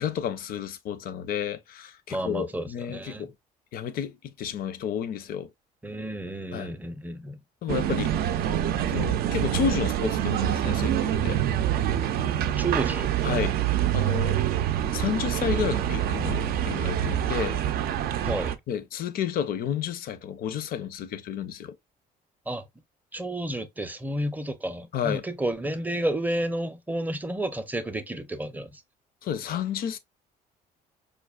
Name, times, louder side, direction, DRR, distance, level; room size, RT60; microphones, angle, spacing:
voice 1, 0.0-3.3 3.7-5.5 6.5-6.7 7.6-8.1 8.9-11.4 13.2-14.4 14.9-17.6 18.7-21.7 24.9-25.2 29.2-30.0, left 8 dB, 60° left, 0.6 m, -31 dB
voice 2, 2.1-3.3 5.8-7.4 12.6-13.1 18.2-18.5 22.5-22.6 23.1-28.8, right 1 dB, 10° right, 0.5 m, -31 dB
sound 1, 7.7-18.6, right 10 dB, 65° right, 0.4 m, -26 dB
5.0 x 2.4 x 2.2 m
cardioid pair, 110°, 17 cm